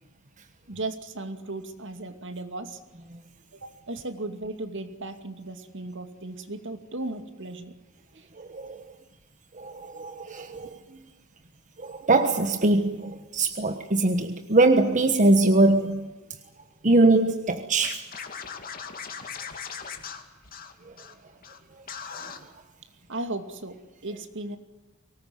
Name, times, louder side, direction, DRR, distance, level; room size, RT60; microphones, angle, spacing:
voice 1, 0.7-2.8 3.5-7.7 8.1-8.3 23.1-24.6, right 2 dB, 60° right, 2.5 m, -36 dB
voice 2, 8.4-8.8 9.5-10.8 11.8-16.1 16.8-18.1 20.9-21.0 22.1-22.3, right 2 dB, 35° right, 1.3 m, -22 dB
Scratching (performance technique), 17.8-21.1 21.4-21.6 21.9-22.4, left 6 dB, 45° left, 2.6 m, -39 dB
24.0 x 19.0 x 9.5 m
head